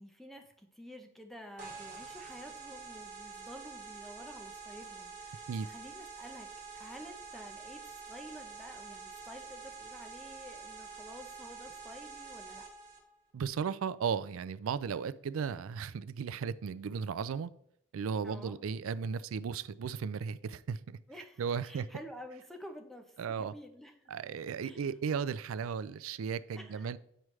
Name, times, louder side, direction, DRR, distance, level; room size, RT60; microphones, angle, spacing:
voice 1, 0.0-6.5 6.7-12.7 18.2-18.6 21.1-24.1 24.6-24.9 26.6-27.0, equal, ahead, 0.6 m, -50 dB
sound 1, 1.6-13.0, right 5 dB, 35° right, 1.6 m, -47 dB
voice 2, 13.3-17.5 17.9-21.0 21.4-21.9 23.2-23.5 24.1-27.0, right 6 dB, 80° right, 0.4 m, -35 dB
8.9 x 4.8 x 3.1 m
head